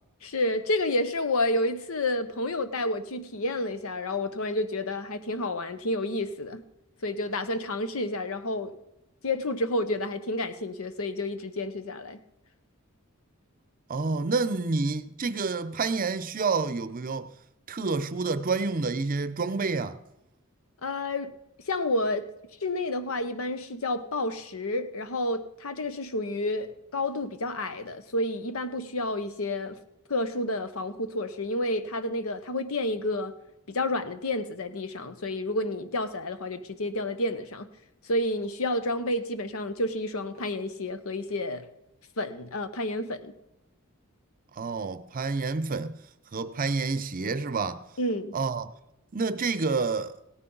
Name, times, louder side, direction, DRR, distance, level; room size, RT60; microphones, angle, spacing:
voice 1, 0.2-6.6 7.0-8.7 9.2-12.2 20.8-21.3 21.7-22.3 22.6-29.8 30.1-33.3 33.7-37.7 38.0-41.7 42.2-43.3 48.0-48.4, left 1 dB, 80° left, 0.9 m, -30 dB
voice 2, 13.9-17.3 17.7-20.0 44.6-46.0 46.3-47.8 48.3-48.7 49.1-50.1, right 4 dB, 40° right, 0.6 m, -28 dB
17.0 x 9.7 x 3.9 m
head